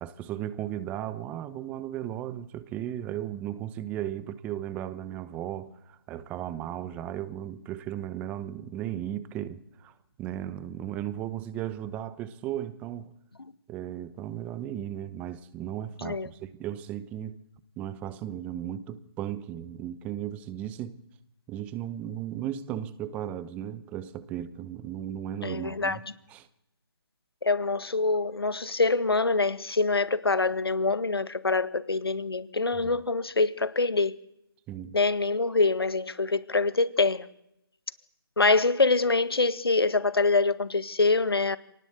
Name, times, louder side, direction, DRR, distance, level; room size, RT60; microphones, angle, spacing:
voice 1, 0.0-9.9 10.2-13.1 13.7-17.4 17.8-21.0 21.5-26.0 26.3-26.5 32.8-33.0 34.7-35.0, right 11 dB, 10° right, 0.9 m, -36 dB
voice 2, 25.4-26.0 27.4-34.2 34.9-37.3 38.4-41.6, left 3 dB, 80° left, 1.8 m, -25 dB
25.5 x 18.5 x 8.0 m
figure-of-eight pair, 155°, 13 cm